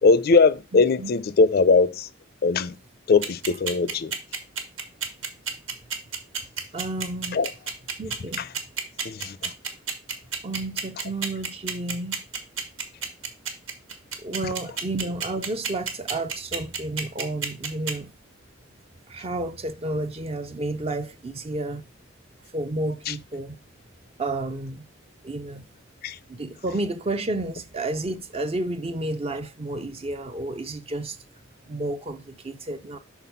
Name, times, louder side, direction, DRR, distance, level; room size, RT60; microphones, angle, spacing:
voice 1, 0.0-2.1 2.4-2.7 3.1-4.1 7.3-7.5 8.4-8.5 9.0-9.5 23.1-23.2 26.0-26.2, left 4 dB, 50° left, 0.4 m, -20 dB
voice 2, 0.7-1.1 6.7-7.4 8.0-8.5 10.4-12.2 14.2-18.1 19.1-21.8 22.5-23.6 24.2-24.8 25.2-25.6 26.3-31.2 31.7-33.0, right 2 dB, 30° right, 0.5 m, -31 dB
sound 1, 3.2-17.9, right 6 dB, 90° right, 1.6 m, -29 dB
6.0 x 4.3 x 5.5 m
head